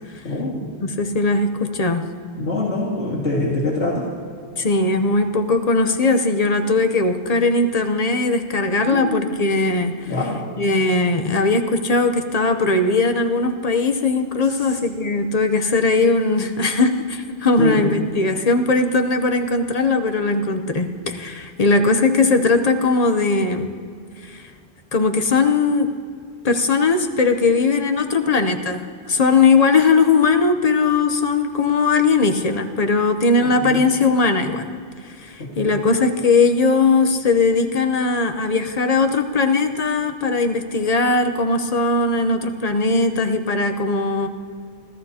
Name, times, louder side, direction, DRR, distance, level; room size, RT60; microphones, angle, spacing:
voice 1, 0.2-0.7 2.4-4.1 8.8-9.4 10.1-10.4 17.6-17.9 33.4-33.8 35.4-35.8, left 2 dB, 85° left, -6 dB, 2.3 m, -25 dB
voice 2, 0.8-2.1 4.6-10.1 10.6-23.7 24.2-24.5 24.9-25.9 26.4-34.7 35.2-44.3, left 3 dB, 40° left, 6 dB, 0.9 m, -19 dB
26.0 x 14.0 x 2.9 m, 2.2 s
omnidirectional pair, 1.1 m